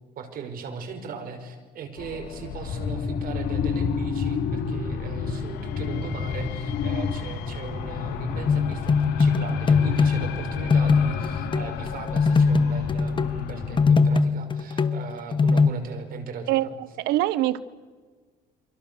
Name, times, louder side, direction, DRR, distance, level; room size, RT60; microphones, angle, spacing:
voice 1, 0.1-16.7, right 5 dB, 60° right, 6 dB, 5.1 m, -38 dB
sound 1, 2.0-13.9, left 5 dB, 85° left, 3.0 m, -30 dB
sound 2, 8.5-10.3 10.7-15.7, left 5 dB, 30° left, 1.1 m, -21 dB
voice 2, 16.5-17.6, right 15 dB, 85° right, 15 dB, 0.9 m, -24 dB
29.5 x 24.0 x 6.9 m, 1.4 s
cardioid pair, 110°, 17 cm